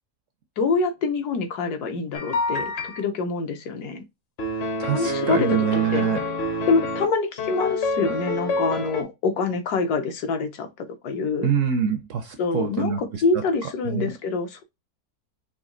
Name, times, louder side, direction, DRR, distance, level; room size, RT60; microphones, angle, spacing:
voice 1, 0.6-4.0 4.9-5.6 5.9-6.1 6.7-11.5 12.4-14.6, left 4 dB, 75° left, 1.3 m, -25 dB
sound 1, 2.1-3.0 4.4-7.1 7.4-9.0, left 2 dB, 50° left, 0.8 m, -27 dB
voice 2, 4.8-6.2 11.4-13.2 13.9-14.1, right 8 dB, 70° right, 0.8 m, -25 dB
4.2 x 2.9 x 3.7 m
omnidirectional pair, 1.7 m